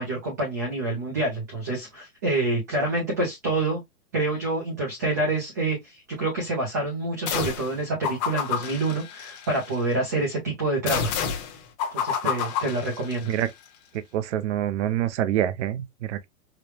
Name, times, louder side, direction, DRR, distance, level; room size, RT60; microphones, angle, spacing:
voice 1, 0.0-3.8 4.1-11.1 11.9-13.3, right 2 dB, 15° right, 0.4 m, -27 dB
sound 1, 7.3-7.7 8.0-9.8 10.9-13.5, left 7 dB, 30° left, 1.0 m, -29 dB
voice 2, 14.1-16.3, right 11 dB, 50° right, 0.7 m, -26 dB
5.0 x 2.1 x 3.2 m
hypercardioid pair, 155°, 45 cm